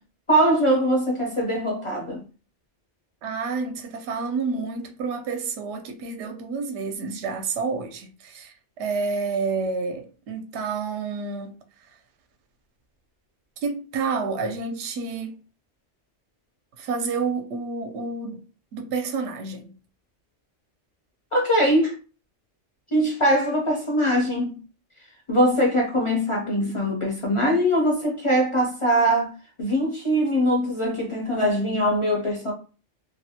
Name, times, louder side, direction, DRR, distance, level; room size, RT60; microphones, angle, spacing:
voice 1, 0.3-2.2 21.3-21.9 22.9-24.6 25.3-29.3 29.6-32.5, equal, 40° left, 0.4 m, -22 dB
voice 2, 3.2-11.5 13.6-15.4 16.8-19.7, right 4 dB, 75° right, 0.9 m, -29 dB
2.5 x 2.1 x 2.7 m
omnidirectional pair, 1.2 m